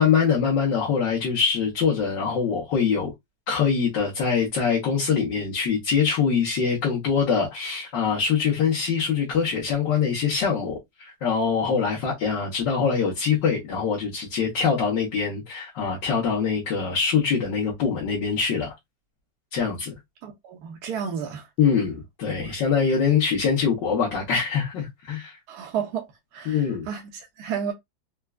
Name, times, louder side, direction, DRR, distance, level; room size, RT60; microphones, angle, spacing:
voice 1, 0.0-3.1 3.5-18.7 19.5-19.9 21.6-25.4 26.5-26.9, left 6 dB, 65° left, 1.7 m, -23 dB
voice 2, 20.2-21.5 25.5-26.1 26.3-27.7, right 7 dB, 65° right, 1.2 m, -32 dB
4.4 x 2.3 x 2.3 m
omnidirectional pair, 2.1 m